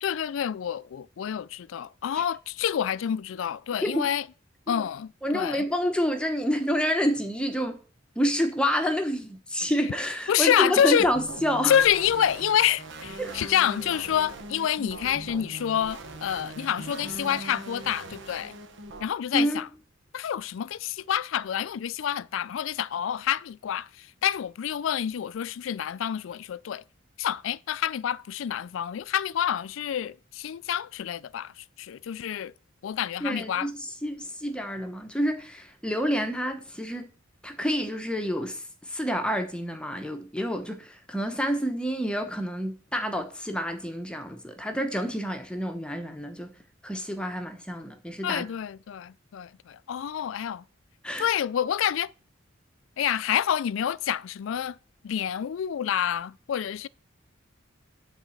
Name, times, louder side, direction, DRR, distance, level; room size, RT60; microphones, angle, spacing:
voice 1, 0.0-4.2 4.7-5.6 10.3-11.1 11.7-18.5 19.0-19.7 20.1-26.8 27.2-32.5 32.8-33.7 48.2-50.6 51.2-52.1 53.0-54.8 55.0-56.9, left 9 dB, 70° left, 0.3 m, -28 dB
voice 2, 5.2-7.8 8.2-11.8 13.2-13.3 19.3-19.6 33.2-37.1 37.4-46.5 46.8-48.5 51.0-51.3, equal, 5° left, 1.0 m, -28 dB
sound 1, 11.0-19.0, right 2 dB, 65° right, 1.1 m, -41 dB
10.5 x 4.1 x 7.2 m
head